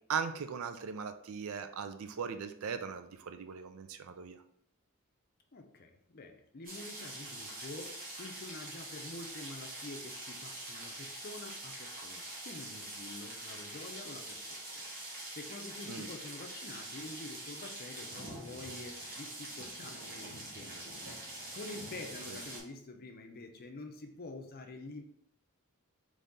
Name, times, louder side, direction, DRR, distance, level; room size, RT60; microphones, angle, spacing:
voice 1, 0.1-4.4 15.9-16.1 22.3-22.4, right 6 dB, 65° right, 8 dB, 0.4 m, -39 dB
voice 2, 5.5-25.0, left 2 dB, 40° left, 4 dB, 0.6 m, -48 dB
sound 1, 6.6-22.6, right 1 dB, 40° right, 1.4 m, -44 dB
4.0 x 3.3 x 3.7 m, 0.68 s
head